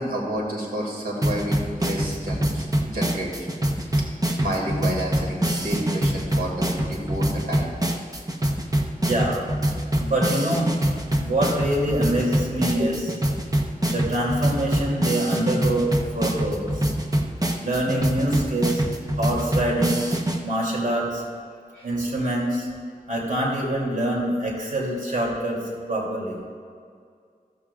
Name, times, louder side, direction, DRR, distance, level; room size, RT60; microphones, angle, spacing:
voice 1, 0.0-3.5 4.4-7.7 12.8-12.9 21.7-21.9, right 1 dB, 90° right, -3 dB, 2.5 m, -30 dB
sound 1, 1.2-20.4, right 1 dB, 25° right, 1.0 m, -25 dB
voice 2, 9.0-9.4 10.0-10.7 11.2-13.0 13.8-16.9 17.6-18.8 19.2-20.0 20.4-21.2 21.8-22.7 23.1-25.6 25.9-26.4, right 1 dB, 60° right, -3 dB, 3.0 m, -25 dB
13.5 x 13.5 x 2.5 m, 2.2 s
wide cardioid pair, 75°, 15 cm